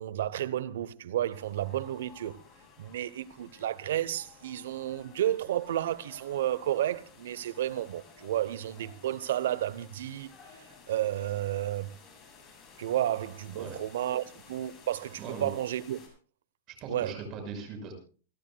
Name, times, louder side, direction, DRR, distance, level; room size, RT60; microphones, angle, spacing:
voice 1, 0.0-2.4 2.8-11.9 12.8-16.0 16.9-17.1, right 12 dB, 75° right, 0.8 m, -32 dB
sound 1, 1.3-16.1, left 5 dB, 20° left, 7.7 m, -55 dB
voice 2, 15.2-15.5 16.7-17.9, right 4 dB, 35° right, 6.1 m, -40 dB
29.0 x 12.5 x 2.3 m
supercardioid pair, 150°, 0 cm